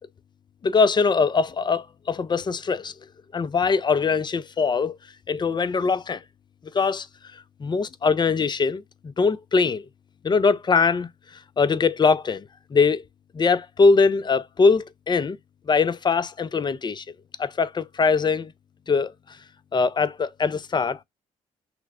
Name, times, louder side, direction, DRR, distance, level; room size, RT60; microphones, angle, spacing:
voice 1, 0.6-2.9 3.3-5.0 5.3-6.2 6.7-7.1 7.3-9.9 10.2-11.1 11.6-12.4 12.7-13.0 13.3-15.4 15.7-17.0 17.4-18.5 18.9-19.1 19.7-21.0, left 4 dB, 30° left, 0.5 m, -22 dB
5.8 x 2.1 x 2.4 m
supercardioid pair, 60°, 15 cm